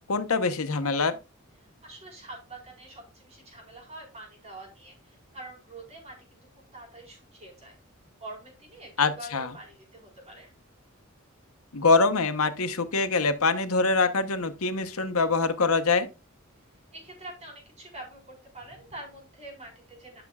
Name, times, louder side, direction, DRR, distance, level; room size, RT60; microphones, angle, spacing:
voice 1, 0.1-1.2 9.0-9.5 11.7-16.1, left 4 dB, 85° left, 1.0 m, -24 dB
voice 2, 1.8-7.8 8.2-10.5 16.9-20.2, right 2 dB, 30° right, 4.3 m, -45 dB
12.5 x 6.0 x 2.4 m
head